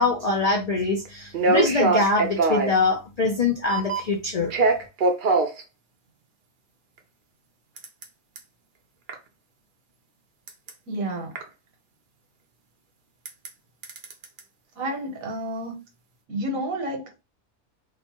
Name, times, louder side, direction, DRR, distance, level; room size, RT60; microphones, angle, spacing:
voice 1, 0.0-4.5, left 3 dB, 75° left, 0.3 m, -23 dB
sound 1, 1.0-1.1 1.3-2.8 3.7-4.1 4.5-5.6 7.8-8.0 8.4-8.5 9.1-9.2 10.5-10.7 11.3-11.4 13.2-13.5 13.8-14.4, right 3 dB, 55° right, 0.6 m, -22 dB
voice 2, 10.9-11.3 14.8-15.8 16.3-17.2, right 1 dB, 80° right, 1.3 m, -30 dB
2.8 x 2.2 x 2.8 m
omnidirectional pair, 1.4 m